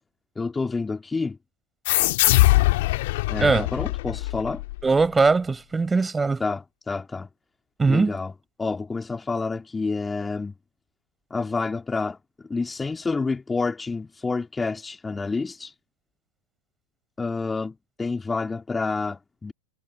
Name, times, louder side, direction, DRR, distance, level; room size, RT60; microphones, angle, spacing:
voice 1, 0.4-1.4 3.3-4.6 6.4-7.3 7.9-8.3 8.6-10.5 11.3-12.2 12.5-15.7 17.2-19.5, left 4 dB, 10° left, 2.1 m, -28 dB
sound 1, 1.9-5.1, left 20 dB, 50° left, 1.9 m, -22 dB
voice 2, 4.8-6.4 7.8-8.2, right 4 dB, 10° right, 5.2 m, -21 dB
figure-of-eight pair, 90°, 0 cm